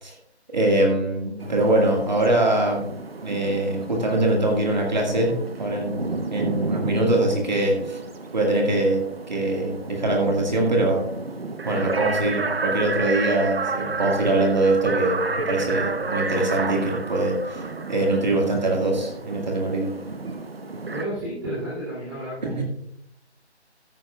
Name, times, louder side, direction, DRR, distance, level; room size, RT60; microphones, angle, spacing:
voice 1, 0.5-2.9 3.2-8.0 8.3-11.1 11.6-20.0 22.4-22.6, right 2 dB, 40° right, 0 dB, 2.1 m, -23 dB
sound 1, 1.4-21.0, right 3 dB, 60° right, 1.1 m, -31 dB
voice 2, 20.9-22.6, right 1 dB, 20° right, -10 dB, 3.0 m, -31 dB
14.0 x 10.0 x 2.4 m, 0.73 s
figure-of-eight pair, 170°, 34 cm